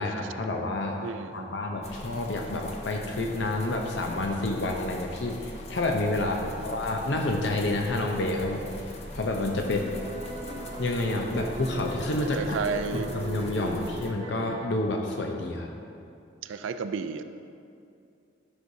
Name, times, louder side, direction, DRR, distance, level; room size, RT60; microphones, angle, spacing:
voice 1, 0.0-1.0 1.3-10.0 10.8-12.6 12.9-15.7, left 2 dB, 65° left, 2 dB, 0.6 m, -29 dB
voice 2, 1.0-1.6 6.5-6.7 9.6-9.7 12.3-13.1 13.8-14.0 16.4-17.2, right 5 dB, 85° right, 10 dB, 0.4 m, -33 dB
sound 1, 1.8-14.1, left 1 dB, 35° left, 0.7 m, -42 dB
sound 2, 9.6-14.7, right 2 dB, 30° right, 0.7 m, -39 dB
12.0 x 6.3 x 2.7 m, 2.5 s
head